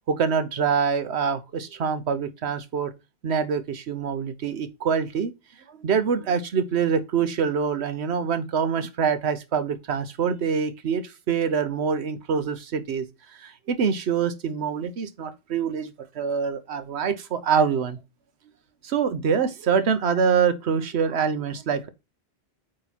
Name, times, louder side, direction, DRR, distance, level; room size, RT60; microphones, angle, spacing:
voice 1, 0.1-2.9 3.2-5.3 5.8-13.0 13.4-15.9 16.1-18.0 18.8-21.9, right 6 dB, 80° right, 1.1 m, -25 dB
8.7 x 3.2 x 4.1 m
omnidirectional pair, 1.1 m